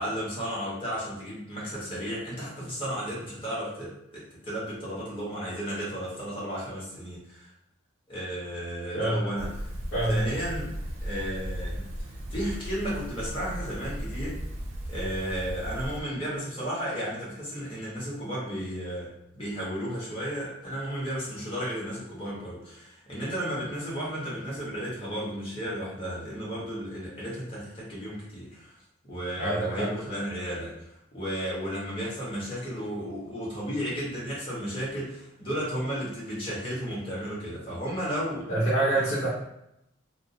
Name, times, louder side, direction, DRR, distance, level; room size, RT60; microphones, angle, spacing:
voice 1, 0.0-7.5 8.1-9.7 10.1-10.7 11.0-11.9 12.3-14.4 14.9-19.1 19.3-28.8 29.0-30.7 31.1-38.5 39.0-39.1, equal, 25° left, -7 dB, 0.9 m, -33 dB
voice 2, 8.9-9.3 9.9-10.2 29.4-29.9 38.5-39.3, right 2 dB, 90° left, -10 dB, 0.9 m, -26 dB
sound 1, 9.4-16.0, equal, 70° right, 0.6 m, -36 dB
2.3 x 2.2 x 2.7 m, 0.81 s
head